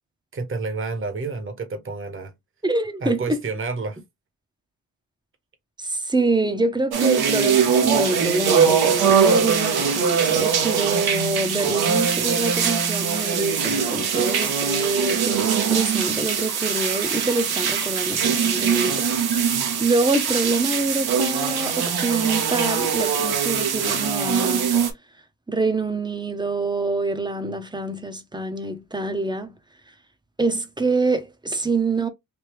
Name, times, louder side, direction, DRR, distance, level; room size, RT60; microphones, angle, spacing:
voice 1, 0.3-2.3 3.0-4.0, right 4 dB, 35° right, 1.0 m, -29 dB
voice 2, 2.6-3.4 5.8-19.4 19.8-24.7 25.5-29.5 30.4-32.1, right 3 dB, 10° right, 0.7 m, -25 dB
sound 1, 6.9-24.9, right 7 dB, 80° right, 0.9 m, -22 dB
3.3 x 2.6 x 3.0 m
cardioid pair, 100°, 37 cm